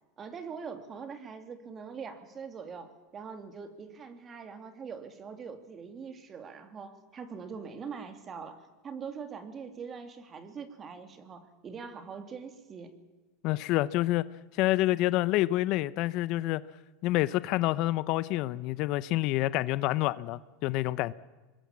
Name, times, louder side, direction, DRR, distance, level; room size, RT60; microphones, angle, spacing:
voice 1, 0.2-13.0, right 6 dB, 25° right, 9 dB, 2.9 m, -43 dB
voice 2, 13.4-14.2 14.5-16.6 17.0-21.1, left 16 dB, 50° left, 17 dB, 0.7 m, -28 dB
25.0 x 21.0 x 7.4 m, 1.2 s
supercardioid pair, 135°, 0 cm